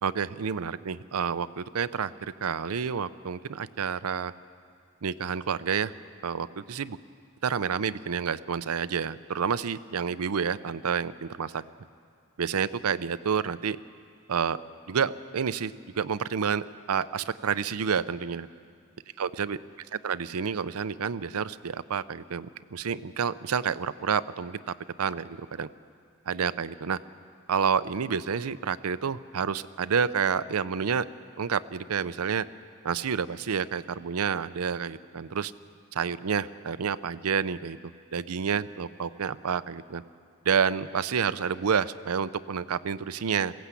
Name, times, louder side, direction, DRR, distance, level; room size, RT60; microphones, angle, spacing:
voice 1, 0.0-4.3 5.0-5.9 6.2-7.0 7.4-11.6 12.4-13.8 14.3-14.6 14.9-18.5 19.2-19.6 19.9-25.7 26.3-27.0 27.5-31.1 31.4-32.5 32.8-35.5 35.9-37.8 38.1-40.0 40.4-43.5, right 6 dB, 85° right, 15 dB, 0.6 m, -29 dB
21.0 x 16.5 x 8.4 m, 2.3 s
head